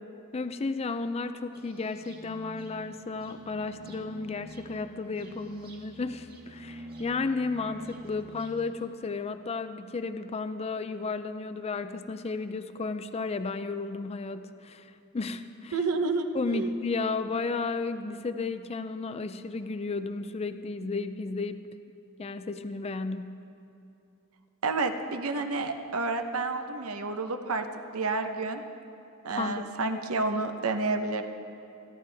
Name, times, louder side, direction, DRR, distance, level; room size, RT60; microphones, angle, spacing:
voice 1, 0.3-15.8 16.3-21.7 22.2-23.4 29.3-30.0, left 3 dB, 30° left, 10 dB, 0.4 m, -33 dB
sound 1, 1.5-8.6, equal, 45° right, 1.6 m, -47 dB
voice 2, 15.7-16.7 24.6-27.6 27.9-28.6 29.2-31.2, right 3 dB, 75° right, 7 dB, 0.9 m, -30 dB
26.5 x 11.0 x 3.4 m, 2.8 s
head